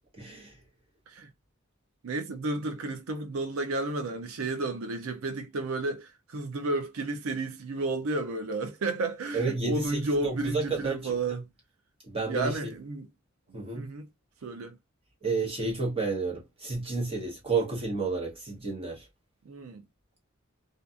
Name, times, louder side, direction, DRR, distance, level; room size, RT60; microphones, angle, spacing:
voice 1, 0.1-0.6 9.3-11.4 12.1-12.7 13.5-13.9 15.2-19.1, right 3 dB, 30° right, 1.0 m, -31 dB
voice 2, 2.0-11.4 12.3-13.1 13.5-14.1 14.4-14.8 19.5-19.8, right 2 dB, 85° right, 0.5 m, -32 dB
2.5 x 2.4 x 2.3 m
head